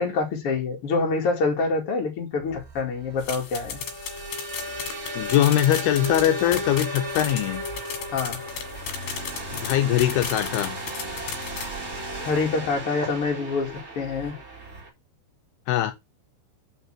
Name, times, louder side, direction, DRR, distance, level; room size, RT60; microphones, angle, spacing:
voice 1, 0.0-3.8 8.1-8.4 12.2-14.4, left 4 dB, 40° left, 2.4 m, -26 dB
sound 1, 2.5-14.9, right 1 dB, 50° right, 0.7 m, -35 dB
sound 2, 3.2-11.7, left 7 dB, 65° left, 3.5 m, -35 dB
voice 2, 5.2-7.6 9.5-10.8 15.7-15.9, left 12 dB, 80° left, 2.4 m, -22 dB
5.8 x 5.5 x 6.1 m
omnidirectional pair, 5.0 m